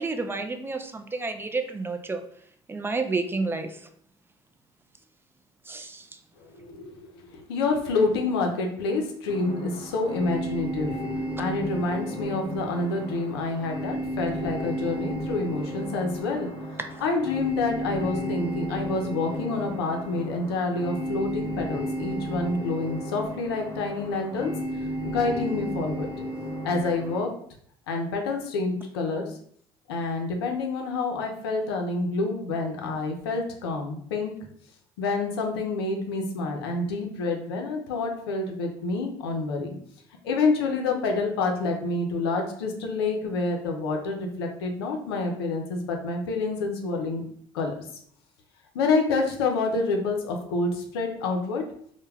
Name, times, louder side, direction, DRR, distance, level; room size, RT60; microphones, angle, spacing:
voice 1, 0.0-2.2 2.7-3.9 5.7-6.1, right 3 dB, 15° right, 6 dB, 0.3 m, -30 dB
voice 2, 6.4-10.9 11.4-24.5 25.1-26.1 26.6-27.3 27.9-29.3 29.9-34.3 35.0-39.8 40.2-47.2 47.5-47.8 48.7-51.6, left 3 dB, 85° left, 2 dB, 0.5 m, -28 dB
sound 1, 9.3-27.2, equal, 30° left, 0.7 m, -33 dB
2.2 x 2.1 x 3.2 m, 0.62 s
hypercardioid pair, 65°, 13 cm